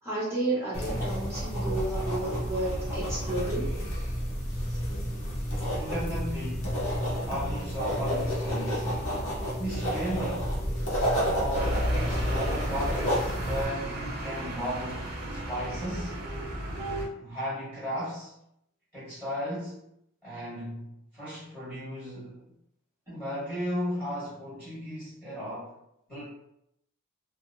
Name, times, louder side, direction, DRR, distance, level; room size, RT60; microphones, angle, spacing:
voice 1, 0.0-3.7, right 2 dB, 10° right, -9 dB, 0.9 m, -31 dB
sound 1, 0.7-13.6, equal, 60° left, 0.8 m, -30 dB
voice 2, 5.8-6.7 7.2-8.9 9.6-10.5 10.8-16.2 17.2-18.3 18.9-19.8 20.2-22.4 23.1-25.7 26.1-26.2, equal, 5° left, -12 dB, 1.3 m, -35 dB
sound 2, 11.5-17.1, equal, 45° right, 0.5 m, -33 dB
2.7 x 2.0 x 2.6 m, 0.79 s
head